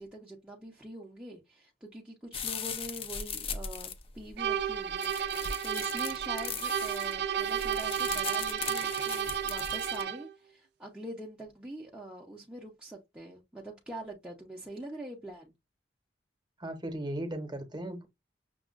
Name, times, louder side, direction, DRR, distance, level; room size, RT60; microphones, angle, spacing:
voice 1, 0.0-15.5, right 1 dB, 5° right, 0.7 m, -44 dB
sound 1, 2.3-10.0, left 6 dB, 30° left, 0.5 m, -39 dB
sound 2, 4.4-10.3, right 8 dB, 65° right, 0.5 m, -32 dB
voice 2, 16.6-18.1, right 1 dB, 25° right, 1.0 m, -36 dB
6.0 x 2.3 x 2.4 m
head